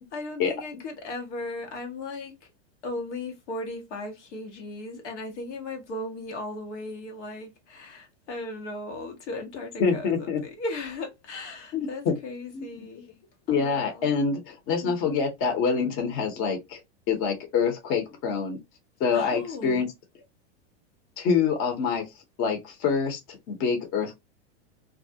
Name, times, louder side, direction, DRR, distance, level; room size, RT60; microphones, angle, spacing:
voice 1, 0.1-2.5 2.8-13.1 13.5-14.1 14.8-15.3 19.1-19.9, left 2 dB, 90° left, 1.0 m, -37 dB
voice 2, 9.8-10.4 11.7-12.1 12.5-12.9 13.5-16.8 17.1-18.6 19.0-19.9 21.2-22.1 22.4-24.2, left 5 dB, 40° left, 0.9 m, -26 dB
2.3 x 2.0 x 2.7 m
hypercardioid pair, 120°, 34 cm